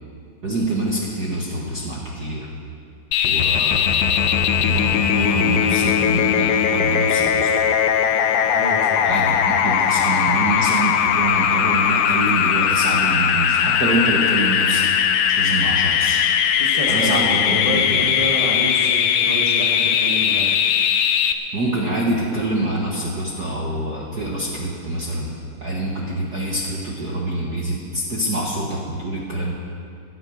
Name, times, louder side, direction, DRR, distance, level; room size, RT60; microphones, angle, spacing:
voice 1, 0.4-2.5 3.2-7.5 9.0-14.8 15.3-16.3 16.9-18.0 21.5-25.4 25.6-29.5, right 1 dB, 50° right, -3 dB, 1.2 m, -25 dB
sound 1, 3.1-21.3, left 8 dB, 80° left, 1.5 m, -19 dB
voice 2, 8.5-9.1 16.6-20.5, equal, 30° left, -3 dB, 0.6 m, -28 dB
16.5 x 11.0 x 6.3 m, 2.4 s
omnidirectional pair, 3.8 m